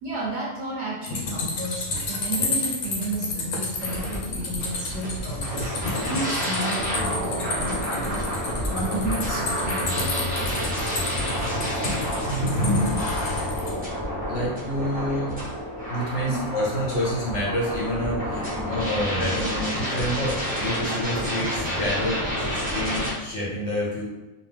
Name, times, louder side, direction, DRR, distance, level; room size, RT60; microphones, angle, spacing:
voice 1, 0.0-8.3 8.7-10.5 16.3-16.5, right 2 dB, 60° right, -4 dB, 0.9 m, -32 dB
sound 1, 1.0-13.7, left 2 dB, 85° left, 1.2 m, -30 dB
sound 2, 3.8-23.1, equal, 10° right, 0.4 m, -29 dB
voice 2, 12.2-12.6 14.3-15.3 15.9-24.0, equal, 60° left, -5 dB, 1.1 m, -28 dB
2.9 x 2.0 x 3.3 m, 1.1 s
omnidirectional pair, 1.5 m